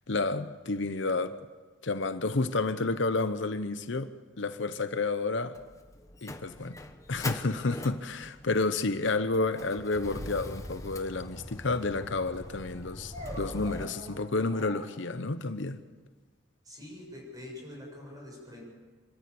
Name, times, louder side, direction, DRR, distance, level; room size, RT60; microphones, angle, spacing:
voice 1, 0.1-1.3 1.8-4.1 4.4-5.6 6.2-6.8 7.1-15.8, left 3 dB, 65° left, 0.8 m, -30 dB
Motor vehicle (road), 5.5-13.9, left 1 dB, 15° left, 1.1 m, -42 dB
sound 1, 7.6-7.8 9.4-10.3 13.1-14.8, equal, 35° right, 5.3 m, -44 dB
voice 2, 16.6-18.6, left 1 dB, 20° right, 7.5 m, -45 dB
26.5 x 14.0 x 8.6 m
head